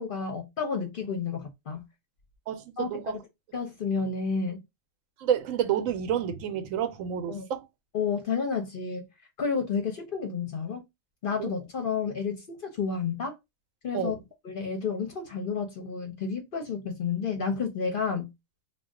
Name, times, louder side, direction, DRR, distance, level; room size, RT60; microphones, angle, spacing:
voice 1, 0.0-1.8 2.8-3.2 3.5-4.6 7.3-7.5 7.9-9.0 9.4-10.8 11.2-13.3 13.8-14.1 14.4-18.3, left 5 dB, 55° left, 0.6 m, -31 dB
voice 2, 2.5-3.2 5.2-7.7 11.4-11.5 13.9-14.2, right 9 dB, 80° right, 1.0 m, -29 dB
2.4 x 2.2 x 3.5 m
omnidirectional pair, 1.4 m